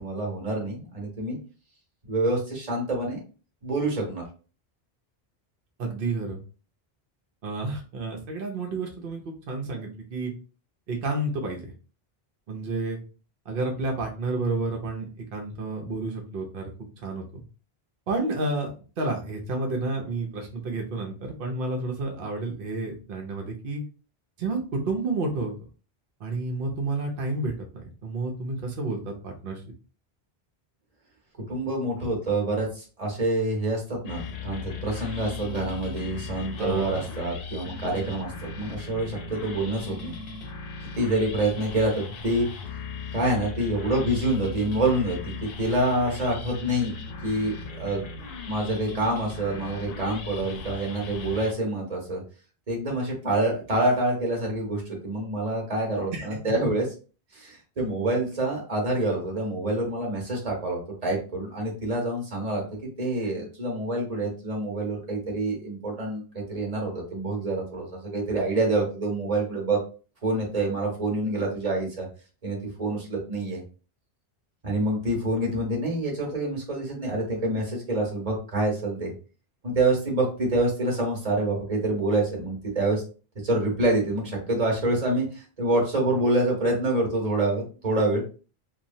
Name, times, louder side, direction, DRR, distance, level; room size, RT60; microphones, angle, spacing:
voice 1, 0.0-1.4 2.0-3.2 3.6-4.2 31.5-40.1 40.9-42.5 43.1-48.0 48.4-52.2 52.7-56.9 57.3-69.8 70.2-72.1 72.4-73.6 74.6-79.1 79.6-83.0 83.4-88.2, right 2 dB, 40° right, 0 dB, 1.1 m, -27 dB
voice 2, 5.8-6.4 7.4-10.3 10.9-11.7 12.5-13.0 13.5-16.6 17.0-17.4 18.1-18.7 19.0-23.8 24.4-25.5 26.2-29.6 36.6-37.0 56.1-56.3, right 2 dB, 65° right, 1 dB, 0.8 m, -30 dB
sound 1, 34.0-51.5, left 5 dB, 70° left, 0.7 m, -37 dB
2.9 x 2.2 x 2.6 m, 0.36 s
omnidirectional pair, 1.1 m